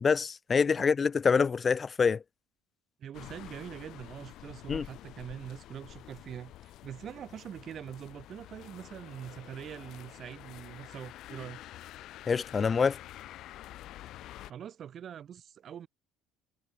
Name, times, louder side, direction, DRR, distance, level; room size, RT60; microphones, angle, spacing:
voice 1, 0.0-2.2 4.7-4.8 12.3-13.0, left 5 dB, 20° left, 0.4 m, -26 dB
voice 2, 3.0-11.6 14.4-15.9, right 9 dB, 35° right, 2.0 m, -44 dB
sound 1, 3.1-14.5, left 14 dB, 50° left, 2.1 m, -48 dB
cardioid pair, 170°, 0 cm